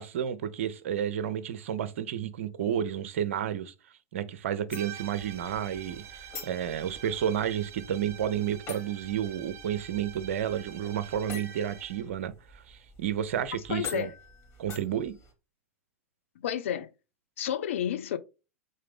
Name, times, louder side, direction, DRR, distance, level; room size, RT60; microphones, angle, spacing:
voice 1, 0.0-3.7 4.1-14.1 14.6-15.1, right 9 dB, 60° right, 0.6 m, -31 dB
sound 1, 4.7-15.3, left 4 dB, 35° left, 2.5 m, -46 dB
sound 2, 4.7-12.1, right 8 dB, 40° right, 1.1 m, -47 dB
voice 2, 13.7-14.1 16.4-16.9 17.4-18.2, left 10 dB, 60° left, 0.6 m, -30 dB
3.8 x 3.7 x 3.5 m
figure-of-eight pair, 90°, 8 cm